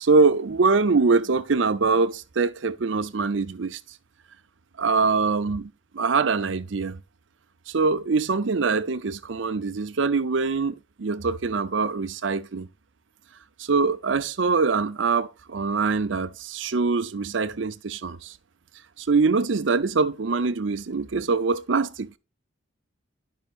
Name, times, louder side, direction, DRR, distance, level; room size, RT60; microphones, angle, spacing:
voice 1, 0.0-3.8 4.8-7.0 7.7-12.7 13.6-18.3 19.0-22.1, right 4 dB, 75° right, 0.6 m, -23 dB
11.5 x 5.6 x 2.5 m
head